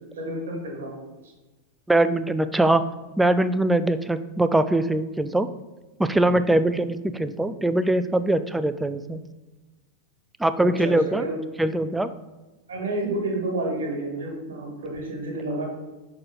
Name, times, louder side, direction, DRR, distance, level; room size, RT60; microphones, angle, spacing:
voice 1, 0.1-1.0 10.6-11.3 12.7-15.7, right 2 dB, 65° right, 1 dB, 1.8 m, -30 dB
voice 2, 1.9-2.8 3.2-5.5 6.0-9.2 10.4-11.2 11.6-12.1, right 1 dB, 5° right, 11 dB, 0.3 m, -22 dB
6.2 x 4.5 x 3.9 m, 1.2 s
figure-of-eight pair, 90°, 0 cm